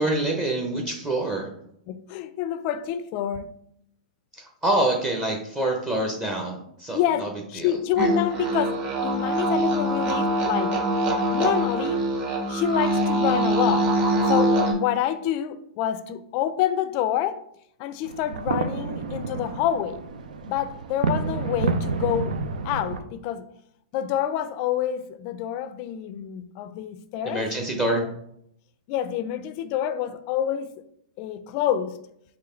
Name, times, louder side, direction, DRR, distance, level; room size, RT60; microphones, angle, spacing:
voice 1, 0.0-1.5 4.6-7.3 7.6-7.7 27.3-28.0, right 1 dB, 15° right, 0.7 m, -26 dB
voice 2, 1.9-3.5 6.9-10.8 11.3-12.0 12.5-13.9 14.3-17.4 17.8-20.0 20.5-22.4 22.6-23.5 23.9-27.5 28.0-28.1 28.9-30.7 31.2-32.0, left 10 dB, 45° left, 0.4 m, -27 dB
sound 1, 8.0-14.7, right 1 dB, 40° right, 1.3 m, -23 dB
sound 2, 18.0-23.0, right 4 dB, 85° right, 0.5 m, -29 dB
3.9 x 3.1 x 4.3 m
hypercardioid pair, 130°, 4 cm